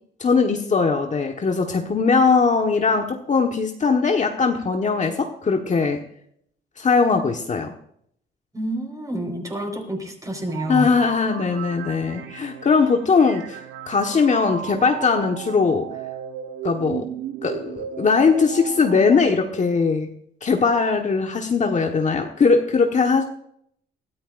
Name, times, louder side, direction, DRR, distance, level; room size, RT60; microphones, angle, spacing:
voice 1, 0.2-6.0 6.8-7.7 10.7-13.6 13.9-15.9 16.6-17.1 17.4-20.1 20.4-23.2, left 4 dB, 40° left, 3 dB, 1.4 m, -20 dB
voice 2, 8.5-10.9, right 1 dB, 15° right, 3 dB, 4.8 m, -29 dB
sound 1, 10.5-19.2, right 9 dB, 80° right, 1.1 m, -35 dB
21.5 x 13.5 x 2.6 m, 0.67 s
cardioid pair, 90°, 20 cm